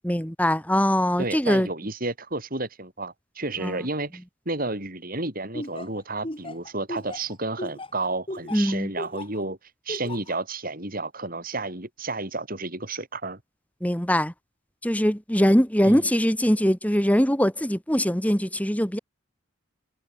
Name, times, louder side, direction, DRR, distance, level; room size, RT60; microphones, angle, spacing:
voice 1, 0.0-1.7 3.6-3.8 8.5-8.9 13.8-14.3 14.8-19.0, equal, 5° left, 5.1 m, -22 dB
voice 2, 1.2-9.6 9.8-13.4 15.8-16.1, right 2 dB, 45° right, 6.8 m, -31 dB
Laughter, 5.5-9.4 9.9-10.3, left 1 dB, 25° left, 4.9 m, -36 dB
head